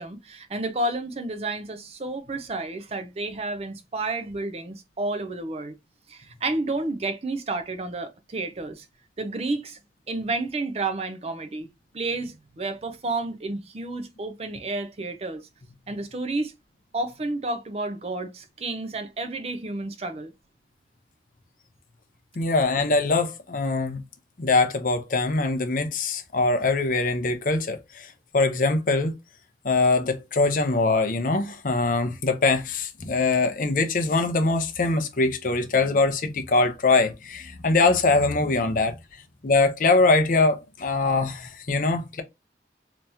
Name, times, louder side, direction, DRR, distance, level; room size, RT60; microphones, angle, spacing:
voice 1, 0.0-5.7 6.1-8.9 9.2-9.8 10.1-11.7 11.9-15.5 15.9-16.5 16.9-20.3, right 2 dB, 35° right, 0.5 m, -31 dB
voice 2, 22.4-24.0 24.4-29.1 29.6-39.0 39.4-42.2, left 3 dB, 50° left, 0.6 m, -23 dB
3.4 x 3.0 x 2.7 m
head